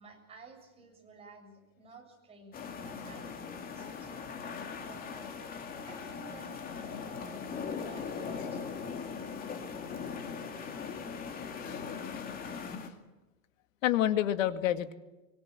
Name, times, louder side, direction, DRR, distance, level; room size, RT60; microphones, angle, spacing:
voice 1, 0.0-9.2, right 3 dB, 15° right, 0 dB, 7.6 m, -54 dB
sound 1, 2.5-12.9, left 6 dB, 20° left, 2.5 m, -40 dB
voice 2, 11.3-11.8 12.2-12.3 12.6-12.9 13.8-14.9, left 12 dB, 65° left, 10 dB, 2.1 m, -30 dB
24.5 x 24.5 x 7.6 m, 1.1 s
supercardioid pair, 155°, 42 cm